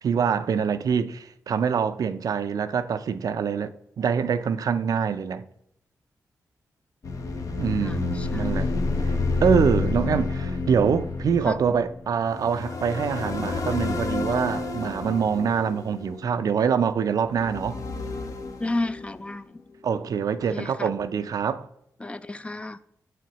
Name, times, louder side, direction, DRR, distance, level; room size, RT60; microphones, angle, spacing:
voice 1, 0.0-5.4 7.6-8.7 9.0-17.8 19.8-21.7, right 6 dB, 70° right, 0.4 m, -25 dB
sound 1, 7.0-16.6 17.3-19.3, left 3 dB, 60° left, 0.8 m, -29 dB
voice 2, 7.8-8.6 11.4-11.6 18.6-19.5 20.5-20.9 22.0-22.8, left 2 dB, 20° left, 0.3 m, -32 dB
7.1 x 6.0 x 2.9 m
cardioid pair, 70°, 6 cm